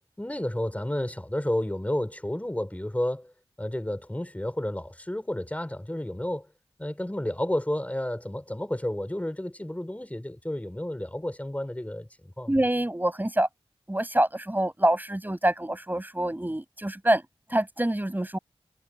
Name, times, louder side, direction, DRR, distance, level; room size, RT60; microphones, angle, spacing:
voice 1, 0.2-3.3 3.6-6.5 6.8-12.1 12.4-12.5, left 1 dB, 15° left, 6.3 m, -31 dB
voice 2, 12.5-13.5 13.9-17.2 17.5-18.4, right 1 dB, 20° right, 7.9 m, -26 dB
wide cardioid pair, 60°, 10 cm